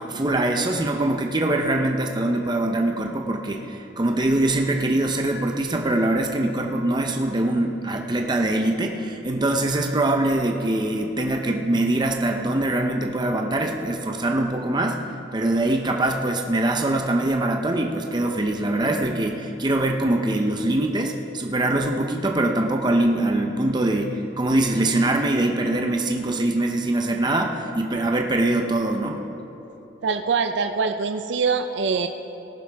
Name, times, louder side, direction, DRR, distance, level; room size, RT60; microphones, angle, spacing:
voice 1, 0.0-15.1 15.3-29.2, right 1 dB, 25° right, 2 dB, 0.7 m, -23 dB
voice 2, 30.0-32.1, right 5 dB, 70° right, 7 dB, 0.5 m, -23 dB
18.5 x 11.0 x 3.5 m, 2.9 s
head